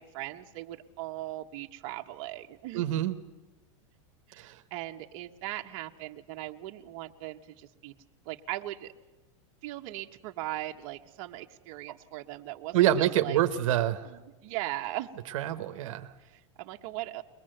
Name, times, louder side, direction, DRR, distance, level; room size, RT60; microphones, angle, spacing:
voice 1, 0.0-2.8 4.3-7.9 8.2-8.9 9.6-13.4 14.0-15.1 16.2-17.2, right 16 dB, 50° right, 3 dB, 1.3 m, -39 dB
voice 2, 2.7-3.2 4.4-4.5 12.7-14.1 15.3-16.1, right 12 dB, 75° right, 7 dB, 1.2 m, -26 dB
22.5 x 20.5 x 7.8 m, 1.2 s
supercardioid pair, 145°, 17 cm